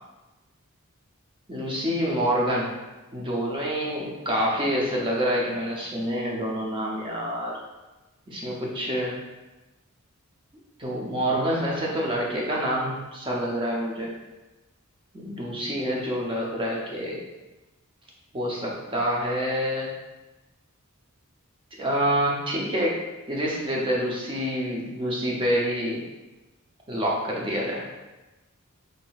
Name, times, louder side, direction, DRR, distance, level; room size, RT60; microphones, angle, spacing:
voice 1, 1.5-2.7 3.1-7.6 8.3-9.2 10.8-14.1 15.1-17.2 18.3-19.9 21.8-23.0 23.3-26.0 26.9-27.8, equal, 25° right, -3 dB, 0.6 m, -27 dB
3.5 x 2.7 x 2.3 m, 1.1 s
head